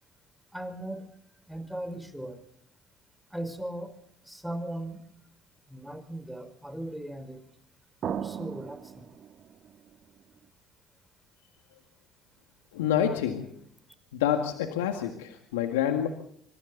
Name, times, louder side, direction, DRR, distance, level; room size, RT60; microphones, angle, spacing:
voice 1, 0.5-1.1 1.5-2.4 3.3-3.9 4.2-5.0 5.7-7.4 8.0-9.1, right 1 dB, 5° right, 9 dB, 5.0 m, -38 dB
sound 1, 8.0-10.4, right 9 dB, 55° right, 1.5 m, -37 dB
voice 2, 12.7-13.5 14.1-16.1, left 10 dB, 85° left, 4 dB, 1.9 m, -27 dB
26.5 x 25.5 x 4.1 m, 0.68 s
hypercardioid pair, 60°, 0 cm